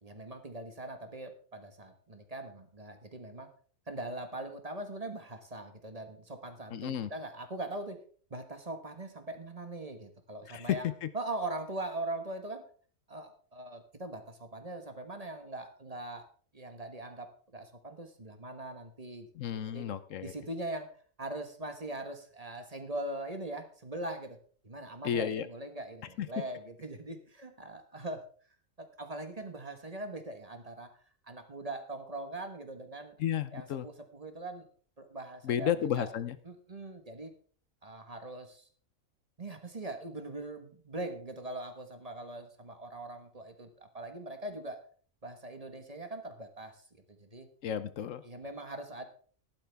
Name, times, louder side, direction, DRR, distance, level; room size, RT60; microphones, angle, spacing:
voice 1, 0.0-3.5 3.9-8.0 8.3-10.9 11.1-12.6 13.1-16.3 16.5-19.3 19.5-19.9 20.2-20.9 21.2-24.4 24.6-28.2 28.8-30.9 31.3-33.2 33.5-34.7 35.0-36.1 36.4-37.3 37.8-38.6 39.4-44.8 45.2-46.8 47.1-47.5 48.2-49.0, right 2 dB, 30° right, 7 dB, 1.3 m, -41 dB
voice 2, 6.7-7.1 10.5-11.1 19.4-20.3 25.0-25.5 26.2-26.3 33.2-33.9 35.4-36.4 47.6-48.2, left 9 dB, 75° left, 14 dB, 1.1 m, -32 dB
13.5 x 11.5 x 3.4 m, 0.44 s
omnidirectional pair, 1.4 m